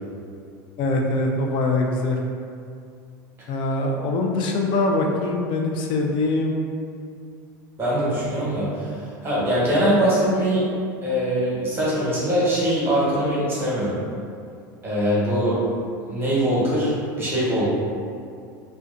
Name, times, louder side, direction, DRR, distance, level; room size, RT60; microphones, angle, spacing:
voice 1, 0.8-2.2 3.5-6.6, left 2 dB, 50° left, 1 dB, 0.4 m, -23 dB
voice 2, 7.8-10.7 11.0-14.0 14.8-15.6 16.1-17.7, equal, 20° right, -8 dB, 1.0 m, -22 dB
2.4 x 2.1 x 2.4 m, 2.3 s
hypercardioid pair, 95°, 11 cm